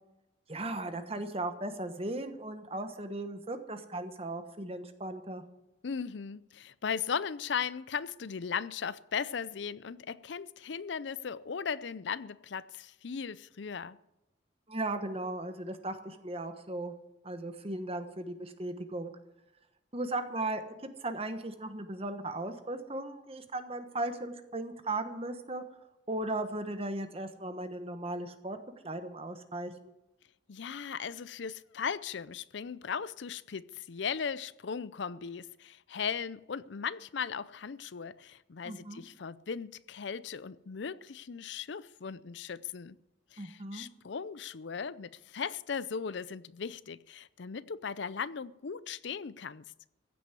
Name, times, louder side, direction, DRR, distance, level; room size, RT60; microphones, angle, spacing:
voice 1, 0.5-5.4 14.7-16.9 17.2-19.1 19.9-20.6 21.0-25.6 26.1-28.6 28.8-29.7 38.6-39.0 43.4-43.9, right 2 dB, 30° right, 1.2 m, -37 dB
voice 2, 5.8-14.0 30.5-43.0 43.3-49.6, left 6 dB, 65° left, 0.5 m, -37 dB
15.5 x 8.3 x 8.3 m
head